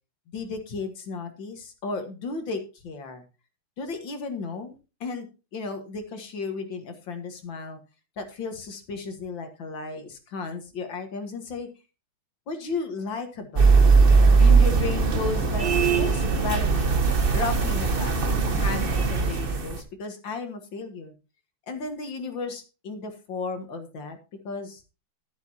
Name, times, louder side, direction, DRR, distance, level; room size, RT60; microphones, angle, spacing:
voice 1, 0.3-3.2 3.8-4.7 5.0-5.3 5.5-7.8 8.2-11.7 12.5-13.8 14.4-15.7 16.0-17.0 17.3-21.1 21.7-24.2 24.4-24.8, left 4 dB, 65° left, 6 dB, 2.3 m, -34 dB
sound 1, 13.6-19.8, right 4 dB, 35° right, 1.1 m, -20 dB
12.0 x 11.0 x 2.8 m, 0.30 s
omnidirectional pair, 2.3 m